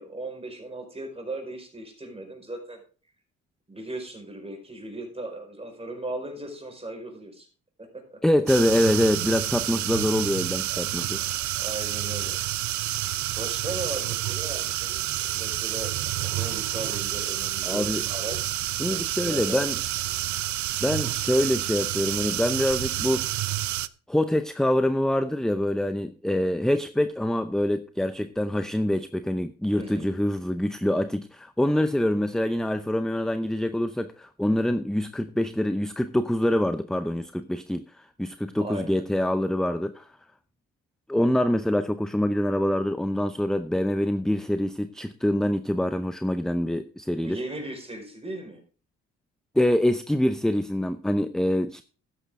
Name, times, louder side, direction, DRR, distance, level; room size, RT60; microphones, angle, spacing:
voice 1, 0.0-2.8 3.7-7.5 7.8-8.2 10.7-10.8 11.1-12.4 13.3-19.6 29.7-30.1 38.6-39.1 47.2-48.6, right 2 dB, 20° right, 4.9 m, -37 dB
voice 2, 8.2-11.2 17.6-18.0 18.7-19.8 20.8-23.3 24.1-40.1 41.1-47.4 49.6-51.8, left 1 dB, ahead, 0.6 m, -25 dB
sound 1, 8.5-23.9, right 14 dB, 70° right, 0.6 m, -29 dB
13.0 x 10.0 x 3.7 m
cardioid pair, 90°, 30 cm